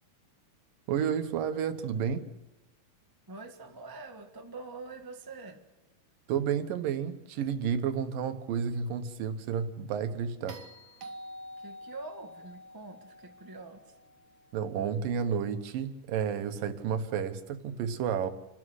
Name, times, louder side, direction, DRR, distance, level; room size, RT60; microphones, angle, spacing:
voice 1, 0.9-2.3 6.3-10.6 14.5-18.3, right 7 dB, 80° right, 9 dB, 2.9 m, -31 dB
voice 2, 3.3-5.6 11.6-13.8, right 3 dB, 20° right, 4 dB, 0.6 m, -45 dB
sound 1, 10.5-14.7 17.0-17.1, equal, 55° right, 1.4 m, -48 dB
28.5 x 13.0 x 8.1 m, 1.0 s
omnidirectional pair, 3.9 m